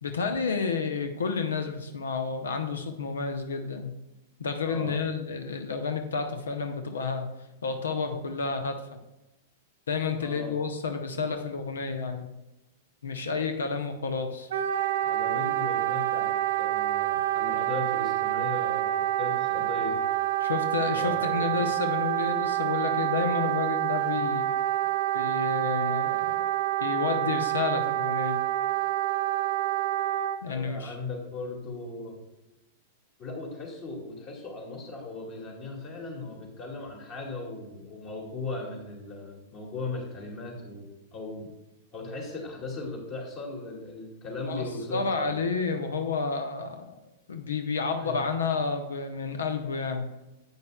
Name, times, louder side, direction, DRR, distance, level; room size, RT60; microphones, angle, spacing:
voice 1, 0.0-3.9 4.4-7.3 7.6-8.8 9.9-12.3 13.0-14.5 20.4-24.4 25.1-26.5 26.8-28.4 30.4-30.9 44.5-47.0 47.3-50.1, left 5 dB, 65° left, 7 dB, 0.7 m, -30 dB
voice 2, 4.6-5.0 10.2-10.6 15.0-20.0 20.9-21.7 30.5-32.2 33.2-40.8 41.1-41.5 41.9-45.4 48.0-48.2, left 3 dB, 35° left, 0 dB, 2.3 m, -38 dB
Wind instrument woodwind instrument, 14.5-30.4, right 13 dB, 60° right, 0.8 m, -27 dB
10.5 x 8.1 x 2.3 m, 0.98 s
figure-of-eight pair, 95°, 0 cm